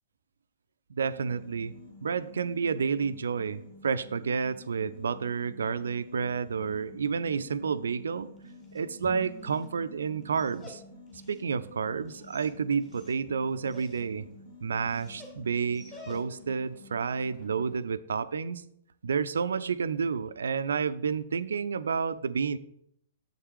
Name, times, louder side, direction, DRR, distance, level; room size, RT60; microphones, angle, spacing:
voice 1, 0.9-1.7 2.0-8.3 8.7-10.8 11.3-14.3 14.6-18.6 19.0-22.6, right 6 dB, 65° right, 15 dB, 0.4 m, -30 dB
sound 1, 1.0-17.8, left 2 dB, 60° left, 2.6 m, -50 dB
Dog, 8.3-16.6, left 2 dB, 20° left, 1.9 m, -53 dB
sound 2, 9.0-11.4, right 4 dB, ahead, 1.7 m, -49 dB
7.3 x 6.5 x 4.6 m, 0.72 s
figure-of-eight pair, 110°, 0 cm